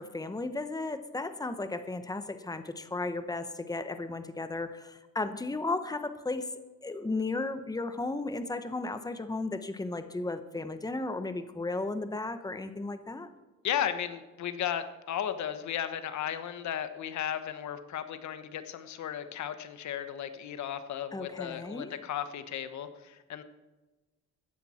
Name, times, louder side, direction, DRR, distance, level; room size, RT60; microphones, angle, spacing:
voice 1, 0.0-6.5 6.8-13.3 21.1-21.9, left 2 dB, 10° left, 9 dB, 1.1 m, -35 dB
voice 2, 13.6-23.4, left 9 dB, 70° left, 10 dB, 1.2 m, -35 dB
15.0 x 10.5 x 4.4 m, 1.2 s
cardioid pair, 90°, 30 cm